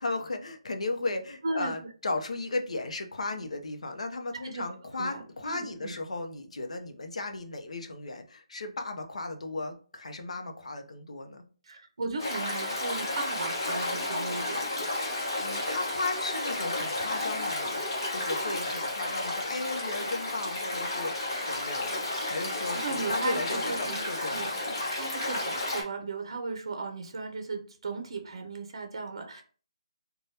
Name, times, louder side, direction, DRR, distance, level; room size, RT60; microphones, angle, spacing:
voice 1, 0.0-11.4 15.4-24.6, left 2 dB, 75° left, 5 dB, 0.6 m, -35 dB
voice 2, 4.3-4.6 5.0-5.9 11.6-14.7 22.8-24.0 24.3-24.5 24.9-29.4, right 3 dB, 50° right, 5 dB, 0.6 m, -36 dB
Stream, 12.2-25.8, left 2 dB, 35° left, 0.9 m, -32 dB
3.2 x 2.2 x 2.7 m, 0.40 s
hypercardioid pair, 180°, 3 cm